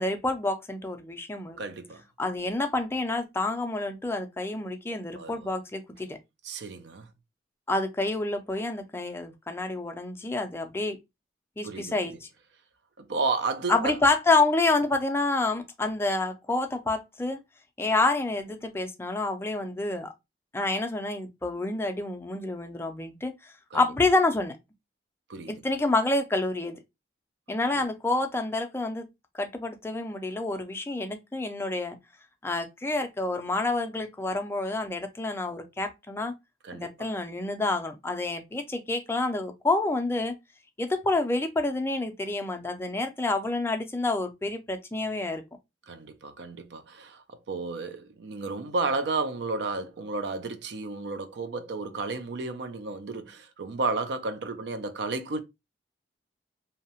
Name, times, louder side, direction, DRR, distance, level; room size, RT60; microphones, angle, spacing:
voice 1, 0.0-1.6 2.2-6.2 7.7-11.0 11.6-12.3 13.7-17.4 17.8-20.1 20.5-24.6 25.5-26.8 27.5-29.1 29.3-32.0 32.4-36.3 36.7-40.3 40.8-45.4, left 2 dB, 15° left, 0.3 m, -28 dB
voice 2, 1.6-2.0 5.2-5.5 6.4-7.1 11.6-11.9 13.0-14.0 23.7-23.8 25.3-25.6 27.7-27.8 36.6-37.1 45.9-55.4, right 3 dB, 75° right, 0.4 m, -32 dB
2.7 x 2.0 x 2.8 m
head